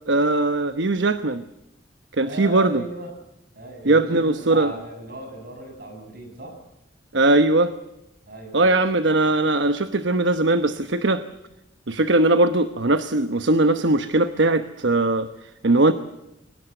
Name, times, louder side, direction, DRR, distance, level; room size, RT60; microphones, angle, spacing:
voice 1, 0.1-1.4 2.2-2.8 3.8-4.7 7.1-7.7 8.5-11.2 11.9-15.9, right 2 dB, 75° right, 10 dB, 1.1 m, -20 dB
voice 2, 2.2-3.1 3.6-6.6 8.3-8.8, right 1 dB, 55° right, 5 dB, 7.4 m, -37 dB
23.0 x 19.0 x 8.1 m, 0.90 s
head